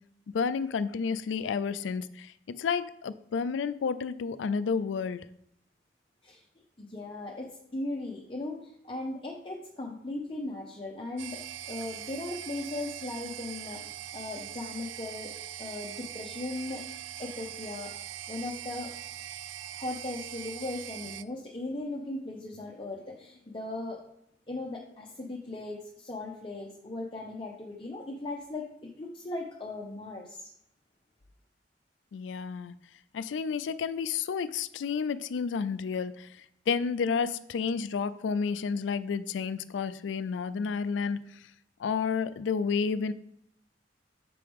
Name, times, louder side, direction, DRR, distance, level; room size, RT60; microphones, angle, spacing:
voice 1, 0.3-5.3 32.1-32.7 33.1-41.2 41.8-43.1, left 5 dB, 80° left, 14 dB, 0.4 m, -31 dB
voice 2, 6.8-11.4 11.7-15.3 15.6-16.8 17.2-17.9 18.3-18.9 19.7-24.0 24.5-30.5, left 2 dB, 30° left, -2 dB, 0.7 m, -38 dB
sound 1, 11.2-21.2, right 12 dB, 80° right, 0.3 m, -42 dB
6.8 x 4.7 x 3.5 m, 0.76 s
head